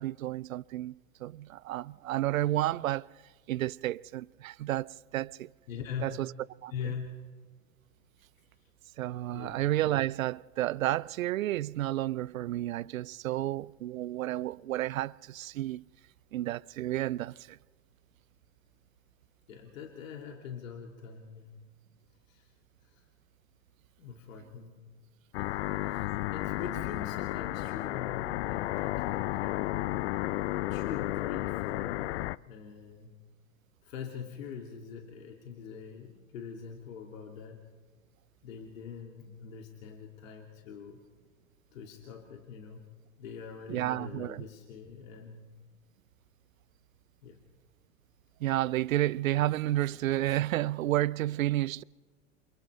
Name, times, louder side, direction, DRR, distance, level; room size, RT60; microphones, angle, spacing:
voice 1, 0.0-3.1 3.5-5.5 6.0-6.3 6.6-6.9 9.0-15.9 16.3-17.6 43.7-44.5 48.4-51.8, right 15 dB, 70° right, 0.6 m, -31 dB
voice 2, 5.7-6.2 6.7-7.1 9.3-9.6 19.5-21.5 22.3-22.5 22.8-23.0 24.0-24.8 26.3-29.9 30.7-32.2 32.5-33.1 33.8-37.6 38.4-41.0 41.7-42.8 43.2-45.5 47.2-47.4, left 7 dB, 65° left, 2.6 m, -43 dB
sound 1, 25.3-32.4, left 17 dB, 50° left, 0.5 m, -33 dB
28.5 x 28.0 x 3.3 m
hypercardioid pair, 95°, 42 cm